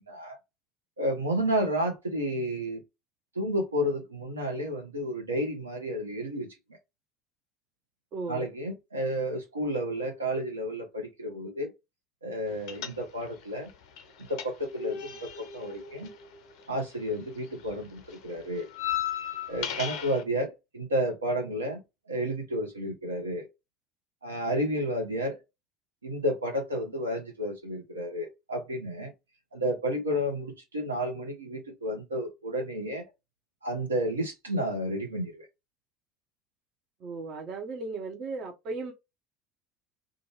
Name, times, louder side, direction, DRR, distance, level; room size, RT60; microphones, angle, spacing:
voice 1, 0.1-0.4 1.0-2.8 3.3-6.5 8.3-11.7 12.2-13.7 14.3-16.1 16.7-18.7 19.5-21.8 22.1-23.5 24.2-25.4 26.0-29.1 29.5-33.0 33.6-35.5, equal, 80° right, 0.8 m, -31 dB
voice 2, 8.1-8.5 37.0-38.9, right 3 dB, 50° right, 0.7 m, -36 dB
sound 1, 12.7-13.4 13.7-17.1 17.3-20.2, left 9 dB, 60° left, 0.5 m, -36 dB
2.5 x 2.3 x 3.0 m
figure-of-eight pair, 65°, 0 cm